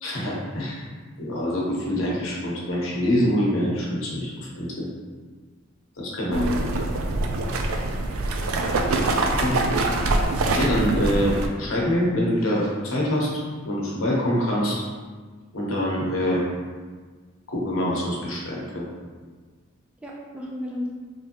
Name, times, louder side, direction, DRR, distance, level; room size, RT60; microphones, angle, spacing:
voice 1, 0.0-0.8 1.2-4.9 6.0-6.4 9.4-9.5 10.6-14.8 15.5-16.4 17.5-18.9, equal, 80° left, -4 dB, 0.8 m, -25 dB
voice 2, 6.3-6.6 9.3-10.1 20.0-20.9, left 1 dB, 5° right, -4 dB, 0.3 m, -32 dB
sound 1, 6.3-11.5, right 2 dB, 85° right, 0.3 m, -24 dB
3.1 x 2.6 x 2.8 m, 1.5 s
head